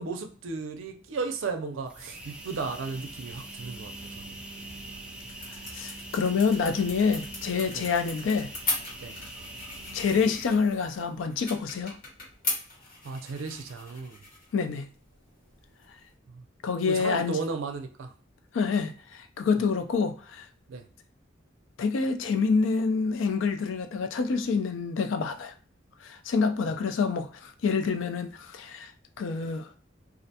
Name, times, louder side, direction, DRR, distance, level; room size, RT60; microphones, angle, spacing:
voice 1, 0.0-4.4 7.7-7.9 9.0-9.2 13.0-14.2 16.3-16.4 16.9-18.1 20.7-20.9, right 4 dB, 90° right, 0.4 m, -35 dB
sound 1, 1.9-11.2, right 1 dB, 5° right, 0.3 m, -43 dB
sound 2, 4.6-16.1, left 2 dB, 50° left, 1.4 m, -39 dB
voice 2, 5.7-8.5 9.9-12.0 14.5-14.9 16.6-17.4 18.5-20.4 21.8-25.5 26.0-27.3 27.6-28.9 29.2-29.7, left 5 dB, 75° left, 0.4 m, -27 dB
2.4 x 2.1 x 2.7 m
head